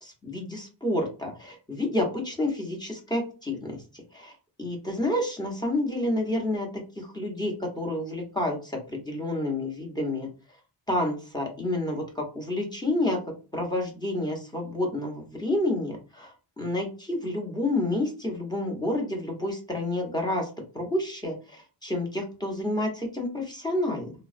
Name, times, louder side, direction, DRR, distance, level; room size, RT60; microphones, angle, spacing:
voice 1, 0.0-6.7 7.0-10.3 10.9-13.2 13.5-20.5 20.7-24.1, left 1 dB, 10° left, 2 dB, 0.8 m, -29 dB
3.5 x 2.1 x 2.5 m, 0.34 s
wide cardioid pair, 135°, 43 cm